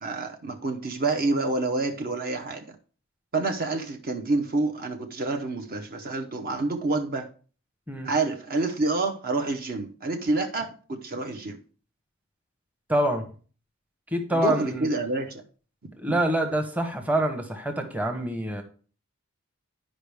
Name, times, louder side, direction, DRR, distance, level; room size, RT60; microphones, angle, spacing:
voice 1, 0.0-2.8 3.3-7.3 8.0-11.6 14.3-15.4 16.1-16.2, right 2 dB, 45° right, 4 dB, 0.8 m, -28 dB
voice 2, 12.9-13.3 14.1-14.9 16.0-18.6, right 1 dB, 5° right, 5 dB, 0.9 m, -26 dB
11.0 x 5.1 x 3.4 m, 0.40 s
head